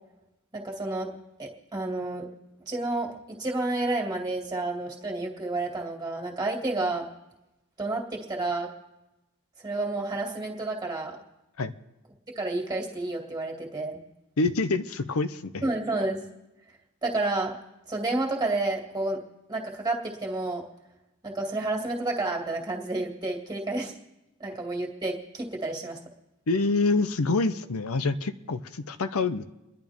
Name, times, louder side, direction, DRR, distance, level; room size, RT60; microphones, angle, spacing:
voice 1, 0.5-1.1 1.4-2.2 2.7-7.0 7.8-8.7 9.6-11.2 12.4-14.0 15.6-16.2 17.0-17.5 17.9-19.2 19.5-20.6 21.2-23.9 24.4-26.0, right 2 dB, 20° right, 0 dB, 2.1 m, -30 dB
voice 2, 14.4-15.6 26.5-29.4, left 3 dB, 85° left, 10 dB, 0.7 m, -26 dB
29.5 x 11.0 x 3.6 m, 1.0 s
head